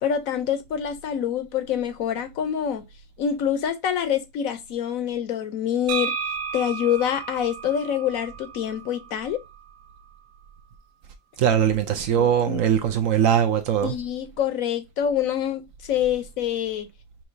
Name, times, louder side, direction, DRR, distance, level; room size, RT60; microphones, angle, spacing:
voice 1, 0.0-2.9 3.2-6.2 6.5-9.4 12.1-12.6 13.8-16.9, left 9 dB, 65° left, 1.0 m, -26 dB
Soleri Windbell, 5.9-9.7, right 6 dB, 80° right, 1.2 m, -33 dB
voice 2, 11.4-13.9, right 9 dB, 65° right, 0.9 m, -21 dB
5.7 x 3.0 x 2.6 m
omnidirectional pair, 1.7 m